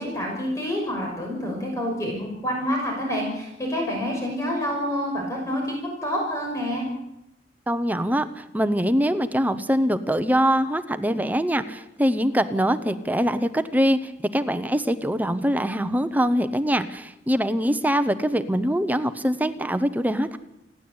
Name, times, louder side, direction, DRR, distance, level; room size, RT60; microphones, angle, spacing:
voice 1, 0.0-6.8, equal, 15° left, -1 dB, 6.0 m, -28 dB
voice 2, 7.7-20.4, equal, 10° right, 10 dB, 0.9 m, -23 dB
29.0 x 11.5 x 8.8 m, 0.86 s
head